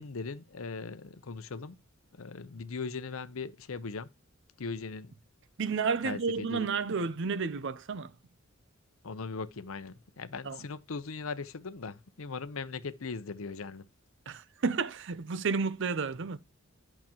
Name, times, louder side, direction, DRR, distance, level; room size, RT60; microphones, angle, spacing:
voice 1, 0.0-1.8 2.2-4.1 4.6-5.1 6.0-6.7 9.0-13.8, left 4 dB, 80° left, 0.7 m, -39 dB
voice 2, 5.6-8.1 10.4-10.6 14.3-16.4, right 5 dB, 60° right, 0.6 m, -31 dB
11.0 x 5.9 x 2.9 m
head